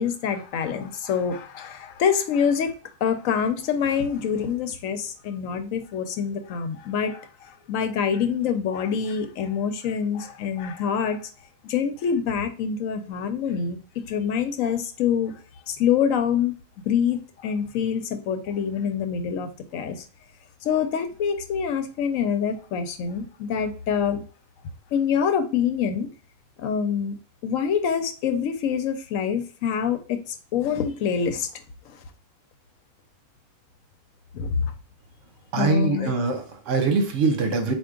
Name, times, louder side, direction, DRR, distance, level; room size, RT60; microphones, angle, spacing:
voice 1, 0.0-2.7 3.0-11.2 11.6-15.3 15.7-16.5 16.9-20.0 20.6-24.2 24.9-26.1 26.6-27.2 27.4-31.5 31.9-32.0 34.3-34.7 35.6-36.1, left 7 dB, 80° left, 8 dB, 1.0 m, -26 dB
voice 2, 35.5-37.7, right 4 dB, 70° right, 5 dB, 1.1 m, -23 dB
4.5 x 2.5 x 3.6 m, 0.38 s
omnidirectional pair, 1.4 m